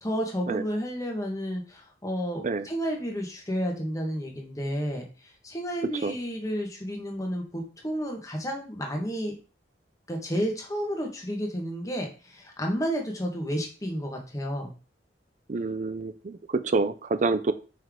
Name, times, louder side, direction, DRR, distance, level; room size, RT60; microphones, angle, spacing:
voice 1, 0.0-5.1 5.4-9.4 10.1-14.7, equal, 20° left, 1 dB, 1.5 m, -31 dB
voice 2, 15.5-16.4 16.6-17.5, right 3 dB, 45° right, 12 dB, 0.5 m, -27 dB
5.5 x 5.5 x 3.7 m, 0.35 s
head